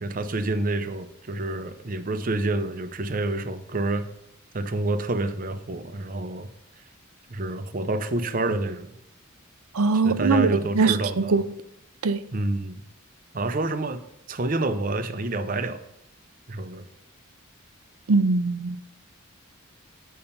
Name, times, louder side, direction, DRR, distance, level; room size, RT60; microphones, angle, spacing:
voice 1, 0.0-4.1 4.5-6.5 7.3-9.0 10.0-11.4 12.3-12.8 13.3-14.0 14.3-15.8 16.5-16.8, right 2 dB, 40° right, 0.6 m, -28 dB
voice 2, 9.7-10.5 10.7-11.5 12.0-12.2 18.1-18.8, right 4 dB, 80° right, 0.6 m, -21 dB
8.8 x 5.6 x 5.4 m
head